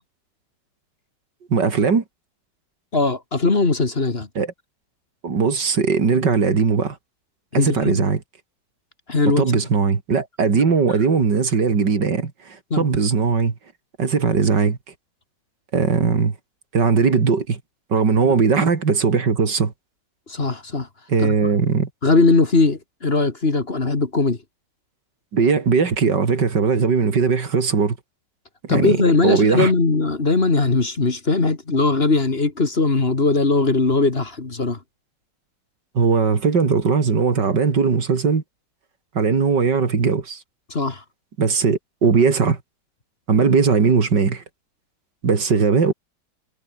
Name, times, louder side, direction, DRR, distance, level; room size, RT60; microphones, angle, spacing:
voice 1, 1.5-2.0 4.3-4.5 5.2-7.0 7.5-8.2 9.3-13.5 14.0-14.8 15.7-16.3 16.7-17.6 17.9-19.7 21.1-21.9 25.3-28.0 28.6-29.7 35.9-38.4 39.1-40.4 41.4-42.6 43.3-44.4 45.2-45.9, right 5 dB, 75° right, 3.2 m, -19 dB
voice 2, 2.9-4.3 7.5-8.1 9.1-9.5 12.7-12.9 18.2-18.3 20.3-20.9 21.2-21.3 22.0-24.4 28.7-34.8 40.7-41.0, left 3 dB, 35° left, 2.3 m, -19 dB
omnidirectional pair, 1.9 m